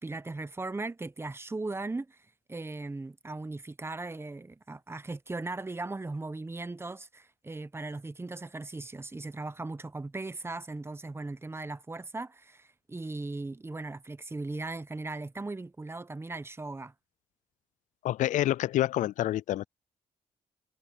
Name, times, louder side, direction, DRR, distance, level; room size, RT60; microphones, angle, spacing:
voice 1, 0.0-16.9, right 2 dB, 20° right, 1.0 m, -38 dB
voice 2, 18.0-19.6, left 14 dB, 70° left, 0.4 m, -27 dB
supercardioid pair, 65°, 13 cm